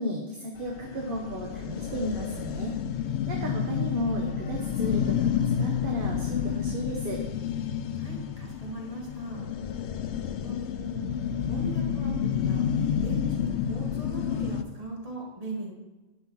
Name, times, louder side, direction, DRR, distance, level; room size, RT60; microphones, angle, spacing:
voice 1, 0.0-2.8 3.3-7.2, equal, 55° right, 0 dB, 1.3 m, -34 dB
sound 1, 0.6-14.6, left 8 dB, 80° left, 0.9 m, -30 dB
voice 2, 8.0-9.4 10.4-11.1 11.4-12.7 13.0-15.7, right 2 dB, 35° right, -3 dB, 2.3 m, -39 dB
11.5 x 5.2 x 6.0 m, 1.1 s
omnidirectional pair, 1.1 m